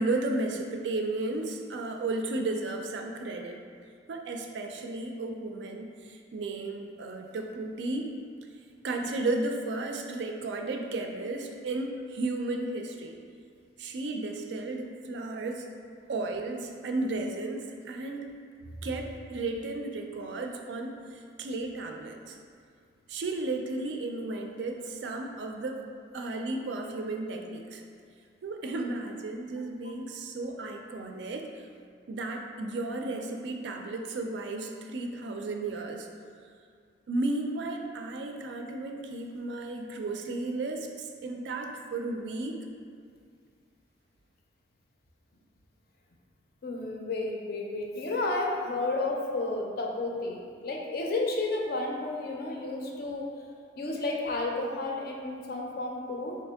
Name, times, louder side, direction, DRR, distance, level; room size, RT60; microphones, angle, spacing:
voice 1, 0.0-3.6 4.1-8.1 8.8-13.2 13.8-15.7 16.1-18.3 18.8-22.4 23.1-25.8 26.1-27.8 28.4-31.5 32.1-36.1 37.1-42.6, right 2 dB, 70° right, 3 dB, 0.4 m, -34 dB
voice 2, 46.6-53.3 53.8-56.4, left 2 dB, 55° left, 0 dB, 0.5 m, -32 dB
3.5 x 2.8 x 3.4 m, 2.2 s
head